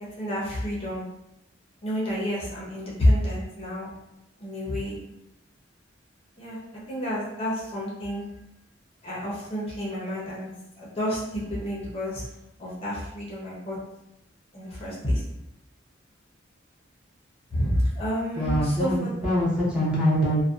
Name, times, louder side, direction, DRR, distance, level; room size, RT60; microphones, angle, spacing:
voice 1, 0.2-1.0 1.8-3.9 4.4-4.9 6.4-6.6 6.9-8.2 9.0-10.5 10.8-12.3 12.6-13.8 14.5-15.2 17.5-19.1, equal, 30° left, -6 dB, 0.6 m, -28 dB
voice 2, 18.4-20.4, equal, 5° right, -8 dB, 0.7 m, -24 dB
2.6 x 2.1 x 2.4 m, 0.84 s
head